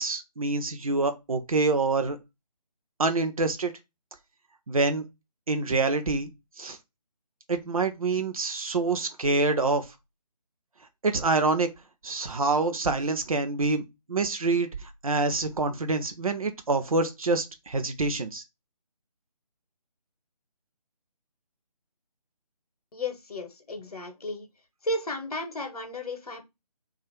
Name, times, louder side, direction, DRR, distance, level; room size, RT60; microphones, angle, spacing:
voice 1, 0.0-2.2 3.0-3.7 4.7-5.0 5.5-6.3 6.6-6.8 7.5-9.8 11.0-11.7 12.0-13.8 14.1-14.7 15.0-18.4, right 3 dB, 60° right, 0.5 m, -26 dB
voice 2, 22.9-24.5 24.8-26.4, left 1 dB, 65° left, 0.7 m, -33 dB
2.5 x 2.4 x 2.9 m
figure-of-eight pair, 150°, 21 cm